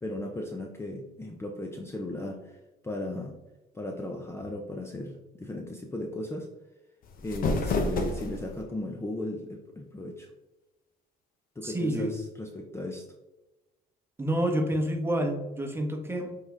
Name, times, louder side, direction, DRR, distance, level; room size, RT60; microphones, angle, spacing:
voice 1, 0.0-3.4 3.7-6.5 7.2-10.3 11.6-13.0, left 1 dB, 15° left, 2 dB, 0.7 m, -36 dB
sound 1, 7.0-8.6, left 3 dB, 55° left, 1.0 m, -29 dB
voice 2, 11.6-12.1 14.2-16.4, right 1 dB, 15° right, 3 dB, 1.2 m, -28 dB
7.8 x 3.9 x 3.4 m, 1.0 s
cardioid pair, 110°, 17 cm